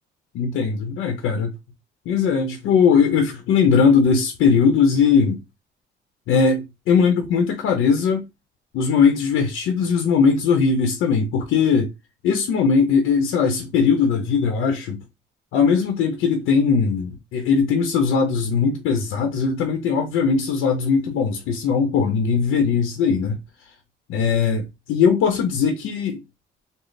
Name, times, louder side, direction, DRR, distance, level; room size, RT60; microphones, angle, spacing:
voice 1, 0.3-1.5 2.1-5.4 6.3-8.2 8.7-11.9 12.2-15.0 15.5-23.4 24.1-24.6 24.9-26.2, left 5 dB, 90° left, 0.7 m, -19 dB
3.3 x 2.0 x 3.9 m
cardioid pair, 90°, 20 cm